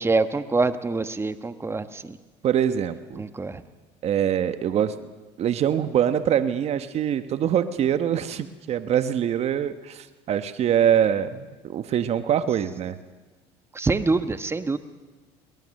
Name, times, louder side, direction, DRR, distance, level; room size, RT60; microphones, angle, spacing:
voice 1, 0.0-2.2 3.2-3.6 13.7-14.8, right 3 dB, 20° right, 11 dB, 1.2 m, -25 dB
voice 2, 2.4-3.2 4.0-5.0 5.4-13.0, right 9 dB, 50° right, 11 dB, 1.3 m, -24 dB
22.5 x 19.0 x 6.6 m, 1.2 s
supercardioid pair, 90°, 14 cm